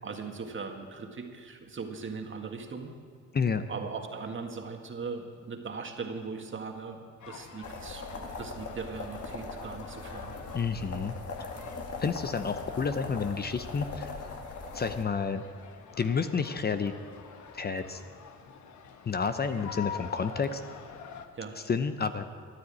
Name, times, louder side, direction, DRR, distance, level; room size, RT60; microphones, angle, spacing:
voice 1, 0.0-2.9 3.7-8.1 8.4-10.3 21.4-21.6, right 4 dB, 40° right, 3 dB, 1.9 m, -39 dB
voice 2, 3.3-3.6 10.5-11.5 12.0-14.2 14.7-15.4 16.0-16.9 17.5-18.0 19.0-20.6 21.7-22.2, left 5 dB, 30° left, 9 dB, 0.7 m, -30 dB
sound 1, 7.2-21.3, left 7 dB, 70° left, 1.3 m, -47 dB
sound 2, 7.6-15.0, left 3 dB, 50° left, 2.0 m, -40 dB
14.0 x 9.7 x 8.4 m, 2.1 s
cardioid pair, 90°, 30 cm